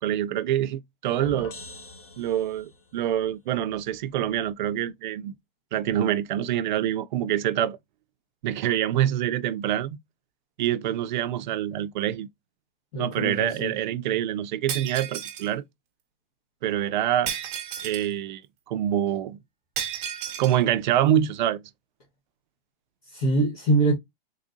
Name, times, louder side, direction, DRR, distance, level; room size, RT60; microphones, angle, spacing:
voice 1, 0.0-1.6 2.2-5.3 5.7-7.8 8.4-10.0 10.6-12.3 13.0-15.6 16.6-17.3 17.8-18.4 18.7-19.4 20.4-21.6, right 11 dB, 50° right, 0.4 m, -26 dB
sound 1, 1.2-2.9, left 3 dB, 60° left, 1.3 m, -41 dB
voice 2, 12.9-13.7 23.1-23.9, right 2 dB, 35° left, 1.2 m, -24 dB
Shatter, 14.7-15.5 17.3-18.1 19.8-20.6, right 9 dB, 25° right, 1.1 m, -33 dB
3.7 x 3.6 x 2.6 m
supercardioid pair, 165°, 30 cm